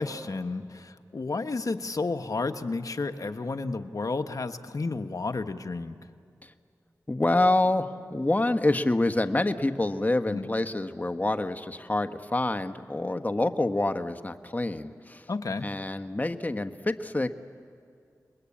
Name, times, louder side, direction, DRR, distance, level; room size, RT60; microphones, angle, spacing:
voice 1, 0.0-6.0 10.2-10.5 15.3-15.7, left 3 dB, 60° left, 8 dB, 1.1 m, -31 dB
voice 2, 7.1-15.3 15.6-17.3, left 2 dB, 25° left, 8 dB, 1.3 m, -27 dB
29.5 x 21.5 x 8.7 m, 2.3 s
cardioid pair, 50°, 7 cm